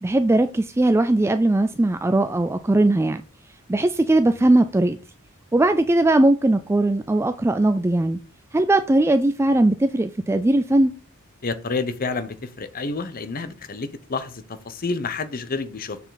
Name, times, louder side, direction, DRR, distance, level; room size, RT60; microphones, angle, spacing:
voice 1, 0.0-3.2 3.7-5.0 5.5-8.2 8.5-10.9, right 2 dB, 10° right, 0.3 m, -19 dB
voice 2, 11.4-16.0, left 4 dB, 40° left, 0.8 m, -29 dB
6.9 x 6.7 x 3.9 m
head